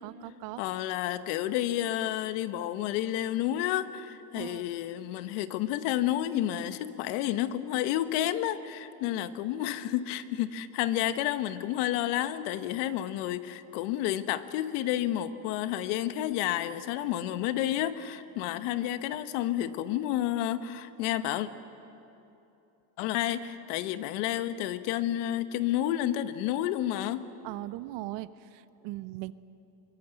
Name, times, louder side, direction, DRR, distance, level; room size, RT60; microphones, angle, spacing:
voice 1, 0.0-0.6 4.4-4.7 27.4-29.3, right 17 dB, 60° right, 15 dB, 0.9 m, -39 dB
voice 2, 0.6-21.5 23.0-27.3, left 12 dB, 70° left, 12 dB, 1.2 m, -30 dB
23.5 x 20.5 x 8.1 m, 2.9 s
supercardioid pair, 110°, 46 cm